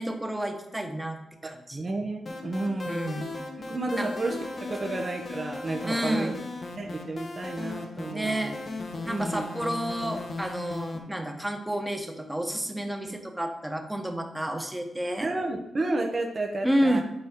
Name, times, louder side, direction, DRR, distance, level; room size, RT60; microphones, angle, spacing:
voice 1, 0.0-1.9 2.9-3.3 3.9-4.1 5.8-6.4 8.1-8.5 9.0-15.3 16.6-17.0, right 1 dB, 10° right, 4 dB, 1.3 m, -30 dB
voice 2, 1.7-3.0 3.7-6.3 6.8-8.6 9.1-9.5 13.1-13.2 15.2-17.0, right 2 dB, 40° right, 2 dB, 1.1 m, -31 dB
sound 1, 2.3-11.0, left 3 dB, 55° left, 1.2 m, -37 dB
9.3 x 4.2 x 3.8 m, 0.89 s
supercardioid pair, 50°, 0 cm